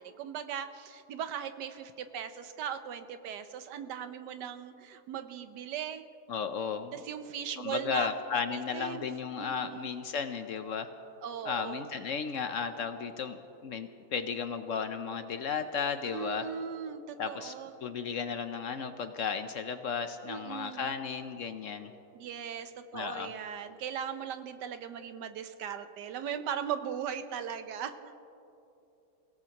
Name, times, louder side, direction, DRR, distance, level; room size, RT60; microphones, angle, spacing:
voice 1, 0.0-6.0 6.9-8.1 8.5-9.1 9.4-9.9 11.2-11.9 16.1-17.7 20.3-20.9 22.1-28.2, right 8 dB, 85° right, 9 dB, 1.4 m, -38 dB
voice 2, 6.3-6.9 7.6-10.9 11.4-16.5 17.2-17.5 17.8-21.9 22.9-23.3, left 6 dB, 60° left, 8 dB, 0.9 m, -34 dB
29.0 x 17.0 x 2.9 m, 2.9 s
omnidirectional pair, 1.8 m